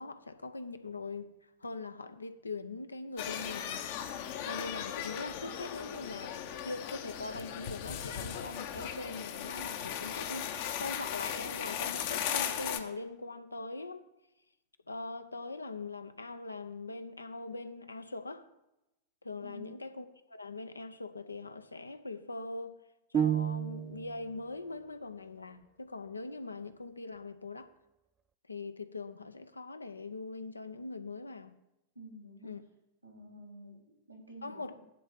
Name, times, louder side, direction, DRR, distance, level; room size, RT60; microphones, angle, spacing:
voice 1, 0.0-3.9 4.2-14.1 14.9-18.5 19.2-22.8 23.1-27.7 28.5-31.6 32.4-32.6 34.4-34.9, left 3 dB, 80° left, 0.6 m, -42 dB
sound 1, 3.2-12.8, left 9 dB, 50° left, 0.8 m, -37 dB
voice 2, 19.4-19.7 31.9-32.5 33.0-34.9, right 1 dB, 85° right, 2.9 m, -50 dB
sound 2, 23.1-24.2, right 9 dB, 25° right, 0.4 m, -30 dB
11.0 x 4.0 x 7.3 m
figure-of-eight pair, 90°, 0 cm